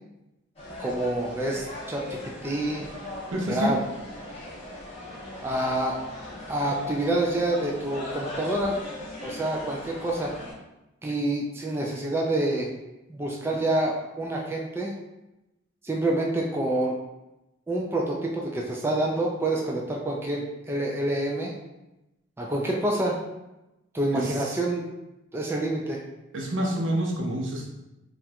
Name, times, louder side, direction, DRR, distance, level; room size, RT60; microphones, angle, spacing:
sound 1, 0.6-10.5, left 2 dB, 30° left, 0.8 m, -39 dB
voice 1, 0.8-2.9 3.5-3.8 5.4-6.0 6.5-8.8 9.2-10.3 11.0-12.7 13.1-14.9 15.8-17.0 17.7-21.5 22.4-23.2 23.9-24.9 25.3-26.0, right 1 dB, 10° right, -1 dB, 0.3 m, -27 dB
voice 2, 3.3-3.7 24.1-24.5 26.3-27.7, right 1 dB, 75° right, -1 dB, 0.6 m, -28 dB
4.2 x 2.4 x 2.2 m, 0.96 s
head